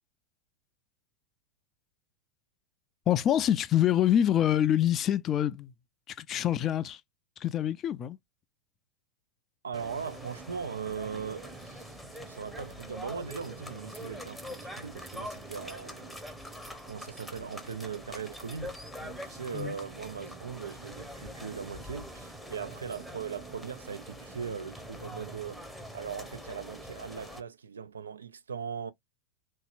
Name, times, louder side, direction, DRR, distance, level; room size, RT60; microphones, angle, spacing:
voice 1, 3.1-5.7 6.1-7.0 7.4-8.2 19.5-19.7, left 11 dB, 30° left, 0.3 m, -26 dB
voice 2, 9.6-16.2 16.9-28.9, right 6 dB, 70° right, 0.3 m, -39 dB
sound 1, 9.7-27.4, equal, ahead, 0.7 m, -44 dB
3.0 x 2.8 x 2.5 m
figure-of-eight pair, 90°, 0 cm